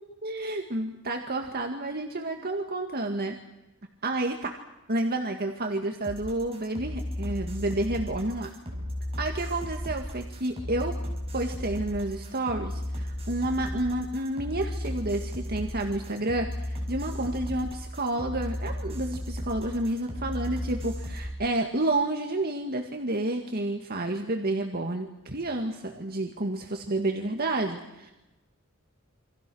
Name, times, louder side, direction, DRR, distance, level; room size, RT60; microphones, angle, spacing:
voice 1, 0.2-3.4 4.0-4.5 4.9-8.5 9.2-11.0 11.3-28.1, right 2 dB, 45° right, 3 dB, 2.0 m, -30 dB
sound 1, 6.0-21.3, left 1 dB, 30° right, 6.4 m, -35 dB
28.5 x 26.0 x 6.4 m, 0.97 s
head